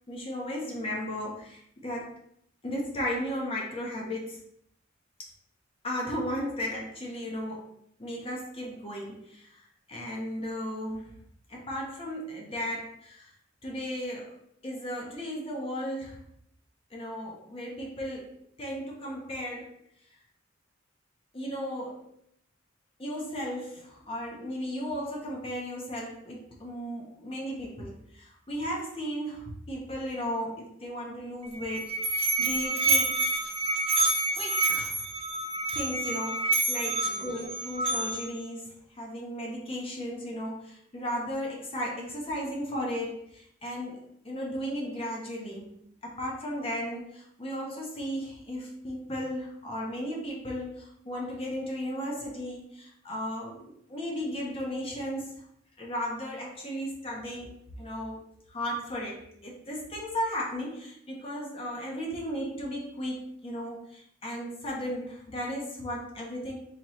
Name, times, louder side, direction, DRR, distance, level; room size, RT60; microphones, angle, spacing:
voice 1, 0.1-2.1 2.6-4.4 5.8-7.7 8.0-11.1 11.5-13.3 13.6-14.4 14.6-16.2 16.9-19.7 21.3-22.1 23.0-33.3 34.3-35.0 35.7-45.7 46.0-55.3 55.8-57.5 57.8-66.5, equal, 30° left, -2 dB, 0.7 m, -35 dB
Musical instrument, 31.4-38.4, right 2 dB, 30° right, 0.4 m, -28 dB
4.1 x 2.9 x 3.0 m, 0.69 s
head